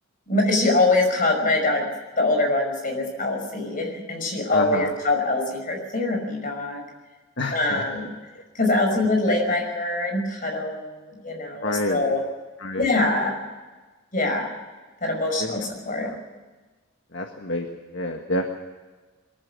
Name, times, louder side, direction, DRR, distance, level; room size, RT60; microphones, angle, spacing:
voice 1, 0.3-1.9 2.2-6.8 7.5-8.1 8.5-12.2 12.8-13.3 14.1-14.5 15.0-16.1, left 2 dB, 40° left, 3 dB, 5.7 m, -23 dB
voice 2, 4.5-4.9 7.4-7.8 11.6-12.0 12.6-12.9 15.4-15.6 16.0-16.1 17.1-17.7 17.9-18.6, left 2 dB, 60° left, 3 dB, 1.7 m, -28 dB
22.5 x 15.0 x 8.2 m, 1.3 s
head